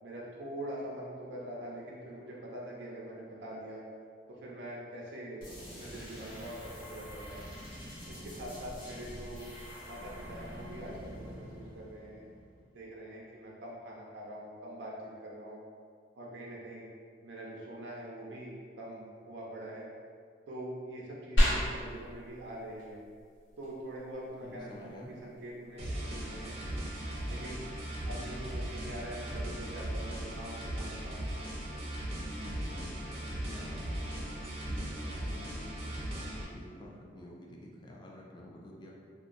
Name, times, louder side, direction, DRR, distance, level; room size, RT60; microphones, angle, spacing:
voice 1, 0.0-3.8 4.3-5.5 5.7-7.5 8.1-9.5 9.8-12.3 12.7-15.6 16.1-16.9 17.2-19.9 20.5-23.0 23.6-26.6 27.3-27.6 28.0-31.2, right 1 dB, 85° right, -4 dB, 0.5 m, -44 dB
sound 1, 5.4-13.0, equal, 50° left, 1.0 m, -46 dB
sound 2, 21.4-31.4, equal, 90° left, 0.8 m, -36 dB
voice 2, 24.4-25.1 32.3-34.1 34.6-38.9, left 1 dB, 25° left, -2 dB, 0.3 m, -49 dB
sound 3, 25.8-36.4, right 1 dB, 35° right, 0.5 m, -38 dB
2.8 x 2.2 x 2.4 m, 2.1 s
head